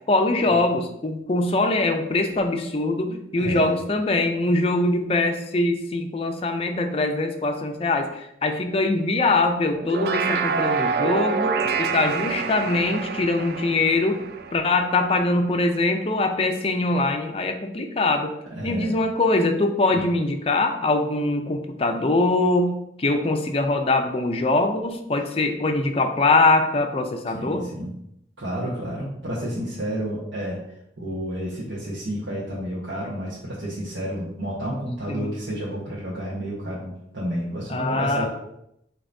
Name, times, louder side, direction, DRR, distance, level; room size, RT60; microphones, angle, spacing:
voice 1, 0.1-14.2 14.5-18.3 18.6-22.7 23.0-27.6 35.1-35.3 37.7-38.3, left 2 dB, 30° left, 5 dB, 0.4 m, -22 dB
voice 2, 3.1-3.8 18.5-18.9 27.3-27.9 28.4-38.3, equal, 90° right, -8 dB, 1.1 m, -30 dB
sound 1, 9.7-15.3, right 5 dB, 60° right, 0.3 m, -27 dB
6.7 x 2.9 x 2.6 m, 0.79 s
head